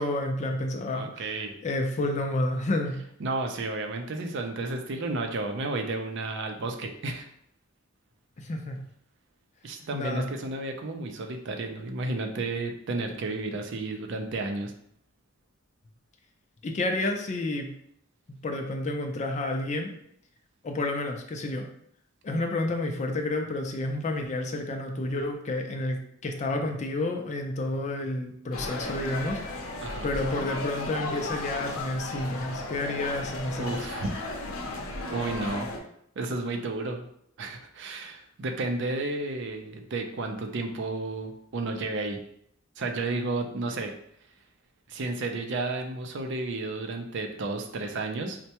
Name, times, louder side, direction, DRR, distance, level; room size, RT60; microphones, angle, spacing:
voice 1, 0.0-1.4 1.6-3.0 8.4-8.8 9.9-10.3 16.6-17.7 18.4-19.9 20.6-21.7 22.2-33.9, left 2 dB, 35° left, 3 dB, 0.4 m, -30 dB
voice 2, 0.9-1.5 3.2-7.3 9.6-14.7 29.8-30.1 33.6-34.1 35.1-35.7 36.2-37.1 37.4-42.2 42.8-43.9 44.9-48.4, right 2 dB, 60° right, 4 dB, 0.5 m, -32 dB
sound 1, 28.5-35.8, left 2 dB, 85° left, 0.6 m, -35 dB
4.3 x 2.2 x 2.8 m, 0.70 s
head